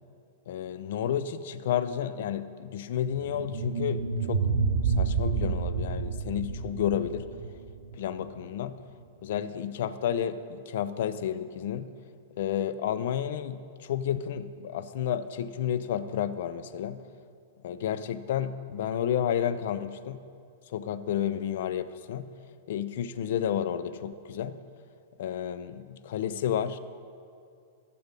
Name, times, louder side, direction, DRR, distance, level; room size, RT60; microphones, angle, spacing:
voice 1, 0.5-4.0 4.3-4.4 4.8-7.3 8.0-8.8 9.2-11.9 12.4-17.0 17.6-20.2 20.7-22.3 22.7-24.6 25.2-26.8, left 9 dB, 60° left, 13 dB, 0.5 m, -31 dB
sound 1, 3.1-8.2, right 5 dB, 60° right, 2.5 m, -29 dB
14.0 x 7.0 x 5.2 m, 2.3 s
supercardioid pair, 155°, 0 cm